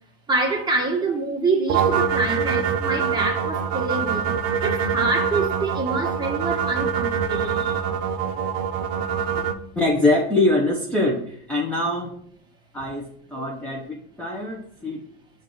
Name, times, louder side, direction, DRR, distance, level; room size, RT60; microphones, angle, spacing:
voice 1, 0.3-4.3 4.6-7.8, right 3 dB, 15° right, 1.3 m, -26 dB
sound 1, 1.7-9.5, right 7 dB, 55° right, 0.6 m, -24 dB
voice 2, 9.8-12.2 12.7-15.0, left 2 dB, 5° left, 0.7 m, -23 dB
7.1 x 2.6 x 5.4 m
supercardioid pair, 135°, 31 cm